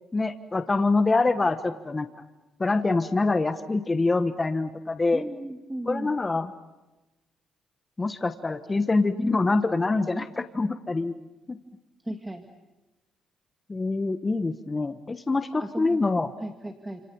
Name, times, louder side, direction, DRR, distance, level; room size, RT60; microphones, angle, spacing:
voice 1, 0.1-2.1 2.6-5.2 5.9-6.5 8.0-11.1 11.5-11.6 13.7-16.3, left 3 dB, 25° left, 9 dB, 1.3 m, -25 dB
voice 2, 5.1-6.1 12.0-12.5 15.6-16.0 16.4-17.0, right 1 dB, 10° right, 5 dB, 2.1 m, -35 dB
29.5 x 28.0 x 7.2 m, 1.0 s
cardioid pair, 90°, 0 cm